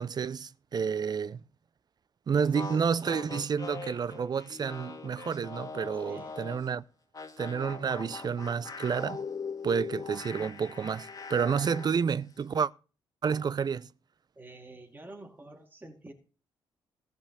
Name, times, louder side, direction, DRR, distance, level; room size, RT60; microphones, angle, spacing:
voice 1, 0.0-1.4 2.3-6.8 7.4-9.2 9.6-12.7 13.2-13.9, right 6 dB, 45° right, 0.6 m, -30 dB
sound 1, 2.4-6.7 7.1-12.0, left 4 dB, 40° left, 2.1 m, -41 dB
voice 2, 2.4-3.3 5.9-6.4 14.4-16.1, right 2 dB, 20° right, 2.5 m, -50 dB
14.5 x 5.1 x 8.0 m
cardioid pair, 70°, 10 cm